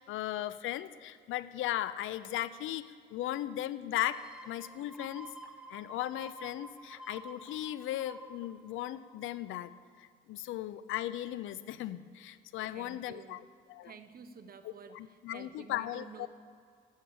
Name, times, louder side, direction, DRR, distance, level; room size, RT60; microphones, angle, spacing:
voice 1, 0.0-5.3 5.7-9.7 10.0-13.4 13.7-13.9 14.6-16.3, left 13 dB, 85° left, 15 dB, 0.5 m, -37 dB
sound 1, 4.0-9.5 9.9-10.0, right 1 dB, 5° right, 1.7 m, -50 dB
voice 2, 12.7-13.5 13.8-16.3, right 6 dB, 50° right, 9 dB, 1.0 m, -51 dB
11.0 x 8.1 x 8.6 m, 2.2 s
cardioid pair, 90°, 20 cm